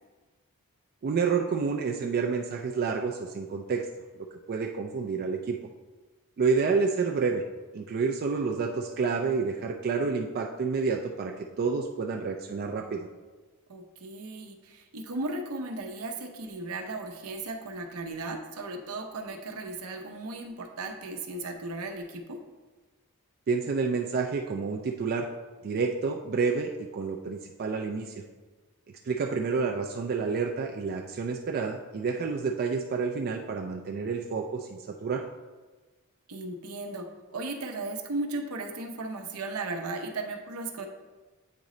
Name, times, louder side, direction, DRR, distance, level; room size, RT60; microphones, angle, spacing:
voice 1, 1.0-3.9 4.5-5.6 6.4-7.4 7.7-13.1 23.5-25.3 25.6-28.2 29.0-35.2, right 5 dB, 45° right, 2 dB, 0.4 m, -29 dB
voice 2, 13.7-22.4 36.3-37.1 37.3-40.9, right 2 dB, 75° right, 4 dB, 0.7 m, -36 dB
8.3 x 3.1 x 3.8 m, 1.3 s
head